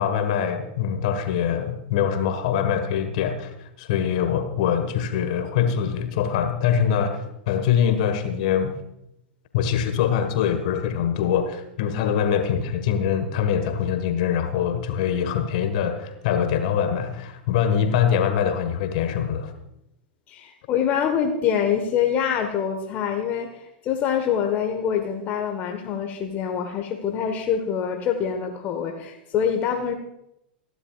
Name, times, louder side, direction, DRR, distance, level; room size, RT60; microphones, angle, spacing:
voice 1, 0.0-3.5 3.8-7.2 7.5-8.7 9.5-19.5, left 8 dB, 50° left, 8 dB, 1.5 m, -23 dB
voice 2, 20.3-29.9, left 8 dB, 30° left, 4 dB, 1.4 m, -25 dB
28.5 x 11.0 x 2.5 m, 0.83 s
figure-of-eight pair, 95°, 5 cm